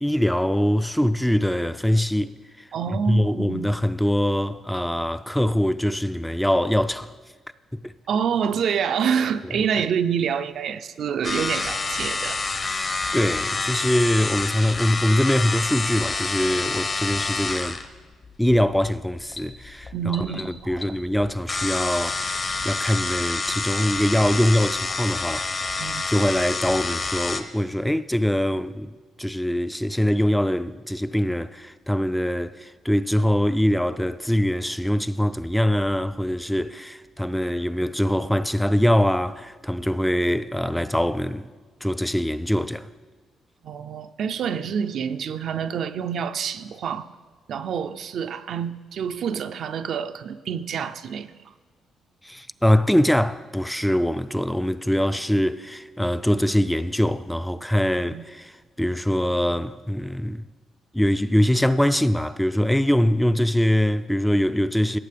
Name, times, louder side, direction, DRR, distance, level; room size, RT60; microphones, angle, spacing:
voice 1, 0.0-2.7 3.1-7.1 7.7-7.9 12.7-12.9 13.1-17.8 18.4-25.5 26.1-28.9 29.2-41.5 41.8-42.9 52.2-58.5 58.8-60.5 60.9-65.0, equal, 5° left, 0.3 m, -23 dB
voice 2, 2.7-3.7 8.1-12.4 19.9-20.9 25.8-26.0 43.6-47.1 47.5-51.3 58.1-58.3, right 7 dB, 65° right, 0.5 m, -27 dB
sound 1, 11.2-27.4, left 3 dB, 35° left, 0.8 m, -28 dB
18.0 x 7.5 x 3.4 m
cardioid pair, 90°, 0 cm